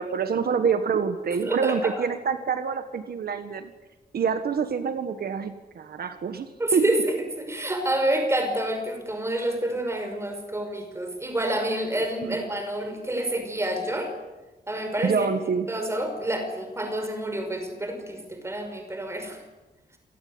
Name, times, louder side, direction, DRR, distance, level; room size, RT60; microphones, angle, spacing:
voice 1, 0.0-3.7 4.1-6.9 12.2-12.4 15.0-15.7, right 6 dB, 70° right, 9 dB, 1.7 m, -26 dB
voice 2, 1.3-2.0 6.6-14.1 14.7-15.3 15.7-19.4, right 1 dB, 15° right, 5 dB, 5.6 m, -28 dB
28.5 x 18.5 x 9.7 m, 1.1 s
wide cardioid pair, 170°, 16 cm